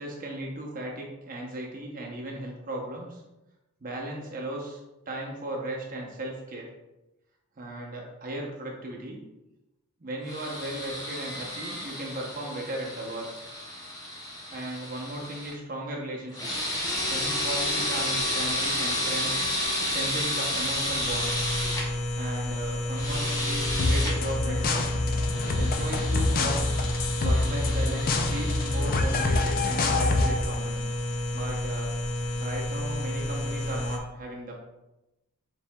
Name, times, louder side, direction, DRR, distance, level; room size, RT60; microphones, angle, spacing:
voice 1, 0.0-3.2 3.8-4.8 5.1-6.7 7.6-9.2 10.0-13.3 14.5-16.4 17.1-19.4 19.9-21.5 22.2-25.1 25.6-26.6 27.2-30.8 31.3-31.9 32.4-34.5, right 1 dB, 40° right, -1 dB, 0.6 m, -36 dB
sound 1, 10.3-15.5 16.3-21.8 22.9-24.1 25.2-28.8, left 1 dB, 15° left, 0.8 m, -31 dB
sound 2, 21.0-34.0, left 1 dB, 80° left, 0.6 m, -31 dB
sound 3, 23.8-30.6, left 2 dB, 40° left, 0.4 m, -26 dB
4.4 x 4.1 x 2.2 m, 0.97 s
head